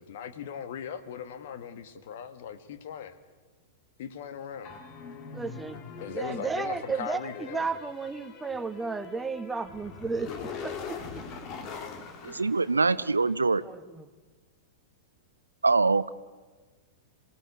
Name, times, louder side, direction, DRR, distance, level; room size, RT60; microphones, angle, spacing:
voice 1, 0.0-3.2 4.0-4.7 6.0-7.7, left 8 dB, 50° left, 10 dB, 1.8 m, -39 dB
sound 1, 4.6-13.3, left 5 dB, 35° left, 2.4 m, -43 dB
voice 2, 5.3-11.0 13.6-14.1, right 4 dB, 10° right, 11 dB, 1.2 m, -34 dB
voice 3, 12.2-13.6 15.6-16.1, right 3 dB, 80° right, 16 dB, 0.7 m, -24 dB
27.5 x 17.5 x 8.4 m, 1.4 s
figure-of-eight pair, 100°, 0 cm